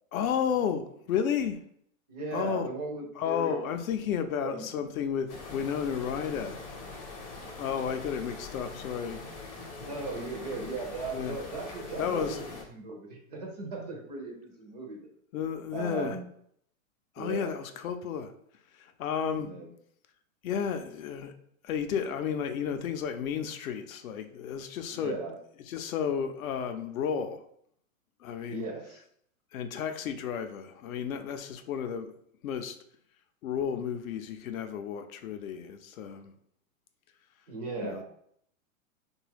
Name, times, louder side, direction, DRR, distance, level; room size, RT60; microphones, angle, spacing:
voice 1, 0.1-1.6 2.3-2.7 3.2-6.7 7.6-9.2 11.1-11.4 12.0-12.6 15.3-16.2 17.2-18.3 18.7-19.5 20.4-21.3 21.6-25.2 25.7-27.4 28.2-28.7 29.5-32.1 32.4-32.8 33.4-36.3 37.8-38.0, left 7 dB, 75° left, 0.5 m, -32 dB
voice 2, 2.1-3.7 4.4-4.6 9.8-12.4 12.7-15.1 15.7-16.3 17.2-17.5 19.4-19.7 24.9-25.4 28.4-29.0 37.5-38.0, right 3 dB, 30° right, 0.4 m, -37 dB
sound 1, 5.3-12.6, left 3 dB, 25° left, 0.6 m, -43 dB
2.7 x 2.2 x 3.3 m
hypercardioid pair, 145°, 42 cm